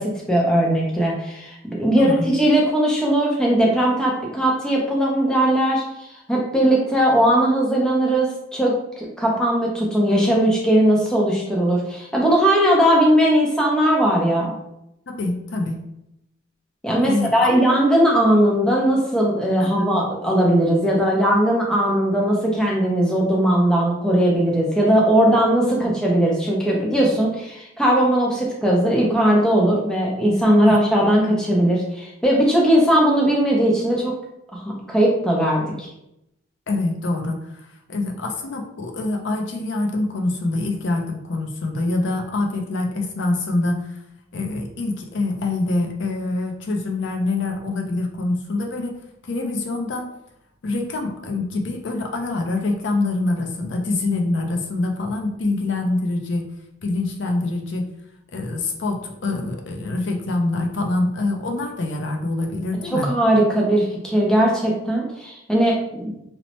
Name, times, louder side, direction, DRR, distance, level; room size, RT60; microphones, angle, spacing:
voice 1, 0.0-5.8 6.3-14.5 16.8-34.2 34.5-35.9 62.9-66.1, right 1 dB, 5° left, -3 dB, 0.5 m, -19 dB
voice 2, 2.0-2.3 15.1-15.8 17.0-17.7 19.6-19.7 30.6-30.7 36.7-44.0 44.3-49.0 49.3-50.1 50.6-56.5 56.8-57.8 58.3-63.1, left 2 dB, 65° left, 2 dB, 0.5 m, -25 dB
2.9 x 2.0 x 3.0 m, 0.81 s
head